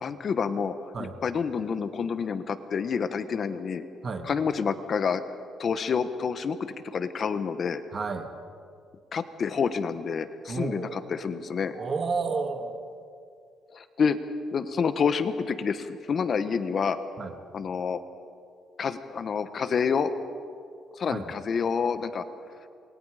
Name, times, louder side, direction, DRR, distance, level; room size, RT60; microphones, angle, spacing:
voice 1, 0.0-0.9 1.2-3.8 4.2-5.2 5.6-7.8 9.1-11.7 13.7-14.2 14.5-17.0 17.5-18.0 18.8-20.1 21.0-22.2, left 6 dB, 45° left, 11 dB, 1.2 m, -28 dB
voice 2, 7.9-8.3 10.5-11.0 11.8-12.8 17.2-17.3 21.1-21.3, right 4 dB, 35° right, 7 dB, 1.8 m, -31 dB
27.5 x 22.0 x 5.0 m, 2.3 s
cardioid pair, 115°, 0 cm